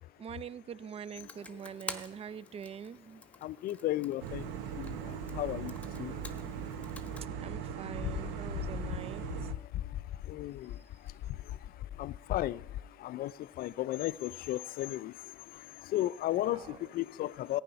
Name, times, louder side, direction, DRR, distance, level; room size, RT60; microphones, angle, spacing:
voice 1, 0.2-3.2 7.4-9.2 16.4-16.9, right 8 dB, 35° right, 20 dB, 0.4 m, -44 dB
Computer keyboard, 1.1-7.3, left 1 dB, 10° left, 1.1 m, -49 dB
voice 2, 3.4-6.2 8.0-8.1 9.7-9.8 10.3-10.8 12.0-12.6 13.0-17.6, left 14 dB, 55° left, 20 dB, 0.4 m, -35 dB
sound 1, 4.2-9.5, right 8 dB, 75° right, 0.8 m, -39 dB
14.5 x 9.5 x 5.7 m, 0.95 s
supercardioid pair, 80°, 18 cm